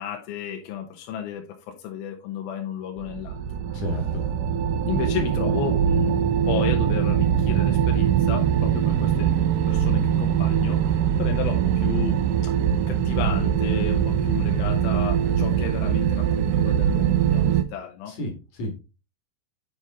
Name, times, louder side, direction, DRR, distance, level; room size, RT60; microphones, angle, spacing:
voice 1, 0.0-3.4 3.7-3.8 4.8-9.3 9.7-12.6 12.9-18.1, left 9 dB, 75° left, 2.6 m, -33 dB
sound 1, 3.0-17.6, right 8 dB, 85° right, 1.9 m, -22 dB
voice 2, 3.7-4.2 18.1-18.7, equal, 50° left, 2.3 m, -31 dB
9.2 x 5.2 x 3.5 m
omnidirectional pair, 4.6 m